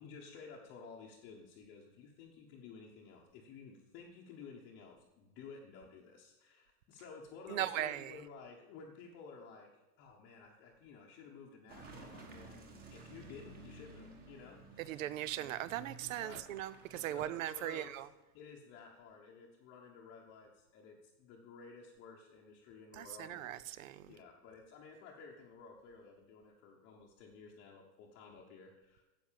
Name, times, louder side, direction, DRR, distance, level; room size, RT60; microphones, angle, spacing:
voice 1, 0.0-9.7 10.0-12.6 12.9-15.0 16.2-16.4 16.9-18.0 18.3-23.6 24.1-29.0, left 5 dB, 20° left, -2 dB, 1.0 m, -54 dB
voice 2, 7.5-8.2 14.8-18.1 22.9-24.1, right 12 dB, 55° right, 17 dB, 0.7 m, -39 dB
Car passing by / Engine, 11.7-18.2, right 3 dB, 20° right, 1.3 m, -54 dB
9.8 x 7.7 x 7.4 m, 1.1 s
supercardioid pair, 170°, 49 cm